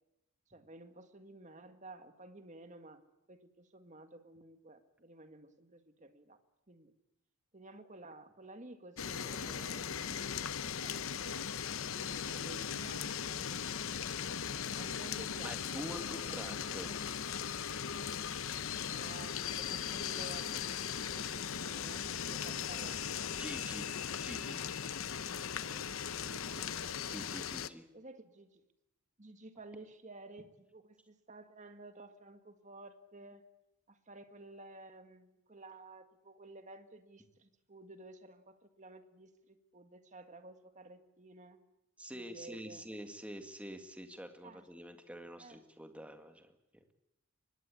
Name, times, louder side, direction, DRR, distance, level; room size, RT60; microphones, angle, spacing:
voice 1, 0.5-6.4 6.7-6.9 7.5-11.4 11.9-14.4 14.8-17.5 18.8-23.4 25.3-26.7 27.9-28.6 29.2-33.4 33.9-41.6 42.1-42.9 44.4-44.7 45.4-45.6, right 2 dB, 35° right, 8 dB, 1.8 m, -53 dB
sound 1, 9.0-27.7, left 7 dB, 70° left, 0.8 m, -38 dB
voice 2, 15.4-17.0 23.4-23.9 24.2-24.6 26.2-26.3 27.1-27.9 42.0-46.5, equal, 5° right, 6 dB, 2.0 m, -46 dB
23.5 x 19.5 x 8.5 m, 0.88 s
head